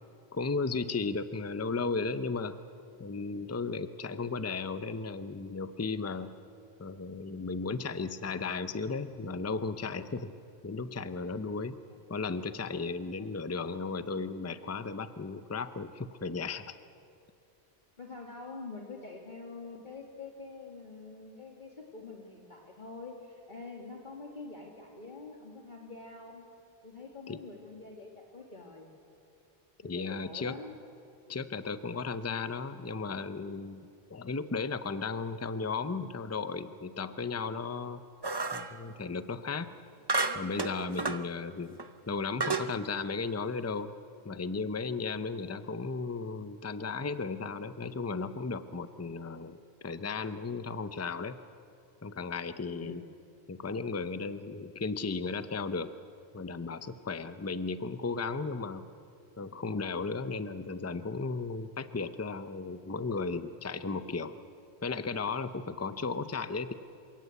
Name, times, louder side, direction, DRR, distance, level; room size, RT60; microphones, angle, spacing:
voice 1, 0.3-2.6 3.0-6.3 6.8-10.3 10.6-11.8 12.1-16.8 27.3-27.4 29.8-30.6 31.3-38.0 38.5-39.7 40.3-41.8 42.1-43.9 44.2-49.6 49.8-51.4 52.0-53.0 53.5-55.9 56.3-58.9 59.4-64.4 64.8-66.7, left 4 dB, 15° left, 11 dB, 0.6 m, -35 dB
voice 2, 18.0-26.4 26.8-28.9 29.9-30.7 45.4-45.7 52.8-53.1 65.9-66.2, left 3 dB, 45° left, 0 dB, 2.2 m, -46 dB
sound 1, 38.2-38.8 40.1-41.2 41.8-41.9 42.4-42.7, right 3 dB, 25° right, 0.8 m, -31 dB
27.0 x 18.0 x 8.3 m, 2.5 s
omnidirectional pair, 1.1 m